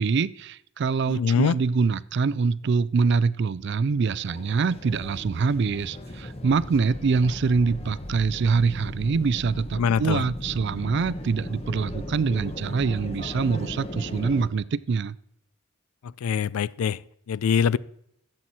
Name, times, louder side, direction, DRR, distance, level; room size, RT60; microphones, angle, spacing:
voice 1, 0.0-15.2, right 5 dB, 55° right, 0.4 m, -24 dB
voice 2, 1.1-1.6 9.8-10.2 16.0-17.0 17.3-17.8, left 7 dB, 90° left, 0.4 m, -23 dB
sound 1, 3.9-14.5, left 1 dB, 30° left, 1.0 m, -37 dB
14.0 x 7.7 x 4.2 m
head